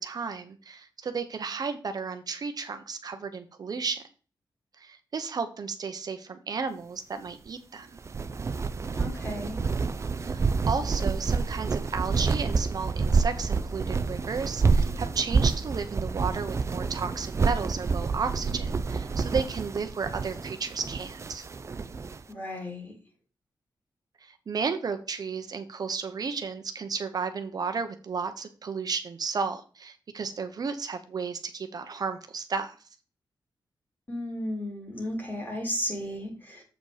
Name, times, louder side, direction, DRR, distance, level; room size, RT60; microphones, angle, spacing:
voice 1, 0.0-4.0 4.8-7.9 10.2-21.4 24.2-32.8, right 5 dB, 55° right, 7 dB, 0.9 m, -33 dB
sound 1, 8.0-22.2, right 4 dB, 40° right, 0.5 m, -28 dB
voice 2, 9.0-9.6 22.3-22.9 34.1-36.6, left 1 dB, 25° left, 1 dB, 3.0 m, -34 dB
7.8 x 5.0 x 5.0 m, 0.36 s
wide cardioid pair, 135°, 8 cm